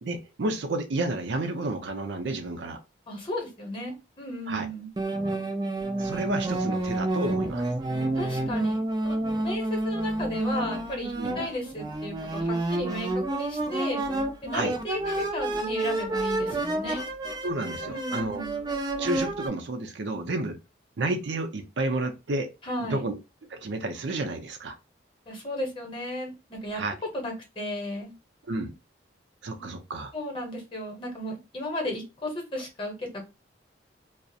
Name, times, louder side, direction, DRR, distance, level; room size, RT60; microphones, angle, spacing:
voice 1, 0.0-2.8 4.5-4.7 6.0-7.7 11.1-11.4 14.5-14.8 16.5-16.6 17.4-18.4 19.0-20.6 21.0-22.5 22.8-23.2 23.5-24.7 26.7-26.9 28.5-28.7 29.4-30.1, right 2 dB, 80° right, 0.5 m, -31 dB
voice 2, 3.1-4.9 8.1-14.0 14.4-17.0 17.9-18.6 22.6-23.1 25.3-26.8 27.1-28.1 29.6-29.8 30.1-33.3, left 1 dB, 30° left, 0.8 m, -34 dB
sound 1, 5.0-19.5, right 2 dB, 25° right, 0.3 m, -29 dB
2.4 x 2.0 x 2.6 m
head